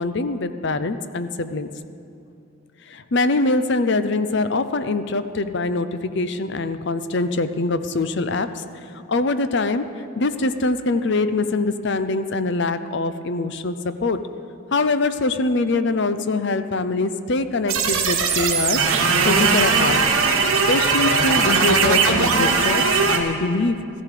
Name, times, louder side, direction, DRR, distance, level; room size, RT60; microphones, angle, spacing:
voice 1, 0.0-1.7 2.9-8.6 8.9-9.9 10.2-14.2 14.7-18.8 19.3-20.0 20.7-23.8, left 3 dB, 55° left, 11 dB, 0.6 m, -23 dB
sound 1, 17.7-23.2, right 5 dB, 80° right, 1.7 m, -19 dB
15.0 x 15.0 x 5.0 m, 2.6 s
head